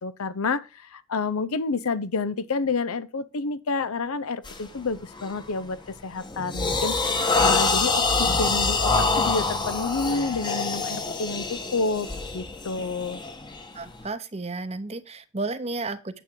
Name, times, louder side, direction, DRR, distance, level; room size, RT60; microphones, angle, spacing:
voice 1, 0.0-12.1 12.3-13.2, left 4 dB, 75° left, 0.6 m, -29 dB
sound 1, 4.4-4.7 5.2-5.5 5.9-14.0, left 3 dB, 20° left, 1.0 m, -25 dB
voice 2, 13.7-16.2, right 3 dB, 30° right, 0.8 m, -33 dB
9.2 x 7.5 x 3.7 m
head